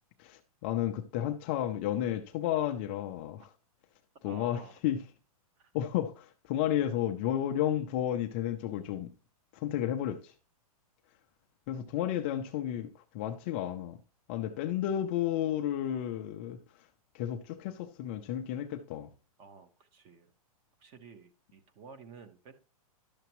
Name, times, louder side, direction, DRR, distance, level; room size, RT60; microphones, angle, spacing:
voice 1, 0.2-3.5 4.2-5.0 5.7-9.1 9.5-10.3 11.7-14.0 14.3-16.6 17.1-19.1, left 11 dB, 20° left, 0.4 m, -32 dB
voice 2, 4.2-4.8 5.6-5.7 19.4-20.3 20.8-22.5, right 5 dB, 25° right, 0.9 m, -52 dB
11.5 x 6.7 x 3.0 m
supercardioid pair, 175°, 19 cm